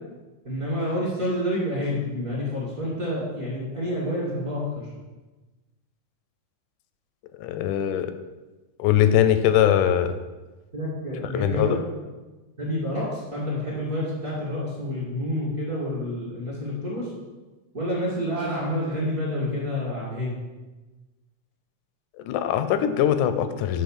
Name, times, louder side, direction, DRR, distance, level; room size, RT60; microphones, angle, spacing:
voice 1, 0.4-4.9 10.7-11.8 12.6-17.1 17.7-20.4, left 1 dB, 35° right, -6 dB, 1.6 m, -28 dB
voice 2, 7.3-8.1 8.8-10.2 11.2-11.8 22.2-23.8, left 10 dB, 85° left, 10 dB, 2.0 m, -21 dB
7.1 x 4.6 x 6.3 m, 1.2 s
omnidirectional pair, 3.5 m